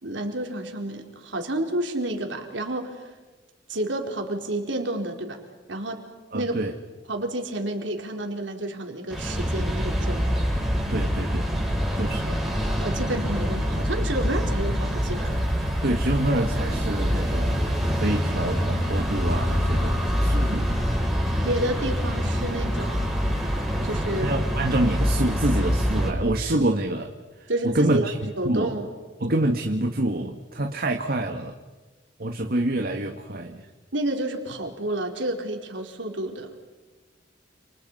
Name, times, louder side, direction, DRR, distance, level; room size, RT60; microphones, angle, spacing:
voice 1, 0.0-3.1 3.7-5.4 5.7-6.0 6.3-6.6 7.1-10.3 12.0-12.3 12.8-15.4 20.4-20.8 21.4-24.3 27.5-28.1 28.4-28.9 33.9-36.5, right 1 dB, 75° right, 3 dB, 4.5 m, -30 dB
voice 2, 6.3-6.7 10.9-11.6 11.9-12.4 15.8-20.7 23.7-23.9 24.2-28.8 29.2-31.6 32.2-33.7, right 1 dB, 55° right, 4 dB, 1.9 m, -27 dB
sound 1, 9.1-26.1, equal, ahead, 7.4 m, -25 dB
30.0 x 29.5 x 5.7 m, 1.3 s
head